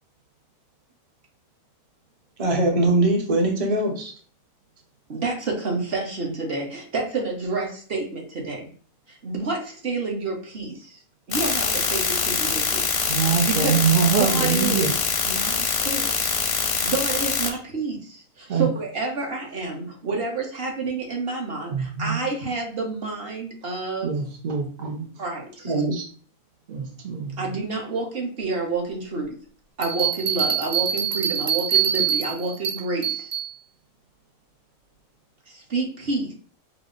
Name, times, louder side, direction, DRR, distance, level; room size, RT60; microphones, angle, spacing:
voice 1, 2.4-4.1 25.6-26.0, right 2 dB, 30° right, 1 dB, 0.8 m, -21 dB
voice 2, 5.1-8.7 9.1-11.0 11.3-12.8 13.5-13.8 14.2-14.9 15.2-16.3 16.8-24.1 25.2-25.7 27.4-29.3 29.8-33.3 35.5-36.3, right 3 dB, 45° right, 0 dB, 1.1 m, -29 dB
sound 1, 11.3-17.5, left 6 dB, 55° left, 0.6 m, -24 dB
voice 3, 13.1-14.9 18.5-18.7 21.7-22.2 24.0-25.1 26.7-27.5, right 7 dB, 60° right, 2 dB, 0.4 m, -24 dB
sound 2, 29.8-33.5, right 9 dB, 80° right, 1.3 m, -24 dB
4.9 x 2.1 x 3.7 m, 0.43 s
omnidirectional pair, 1.5 m